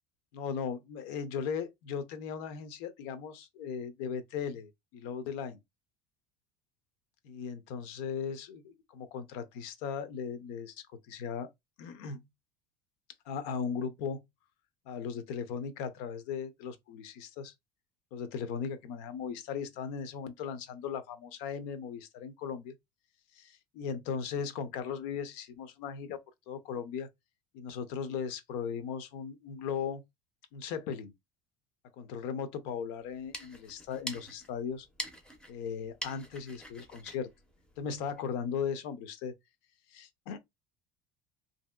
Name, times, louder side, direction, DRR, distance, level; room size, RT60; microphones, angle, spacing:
voice 1, 0.3-5.6 7.2-10.7 11.1-11.5 11.8-12.2 13.3-14.2 14.9-17.5 18.1-22.7 23.4-26.2 26.5-27.1 27.5-30.0 30.5-31.1 32.0-34.9 35.5-37.3 37.8-39.3 39.9-40.4, left 6 dB, 70° left, 0.6 m, -37 dB
sound 1, 33.0-38.3, equal, 5° left, 0.5 m, -45 dB
2.8 x 2.7 x 2.2 m
cardioid pair, 155°, 13 cm